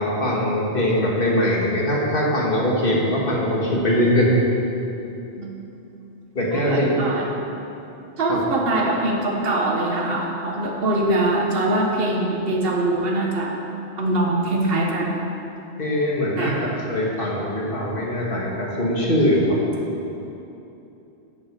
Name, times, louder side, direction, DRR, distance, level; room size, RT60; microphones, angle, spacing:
voice 1, 0.0-4.3 6.4-7.2 8.3-8.4 15.8-16.6 16.9-19.6, left 1 dB, 55° left, -4 dB, 2.0 m, -21 dB
voice 2, 6.5-7.3 8.2-13.6 14.0-15.2 16.4-16.6, right 2 dB, 60° right, -1 dB, 1.4 m, -23 dB
9.2 x 7.9 x 6.8 m, 2.9 s
omnidirectional pair, 1.1 m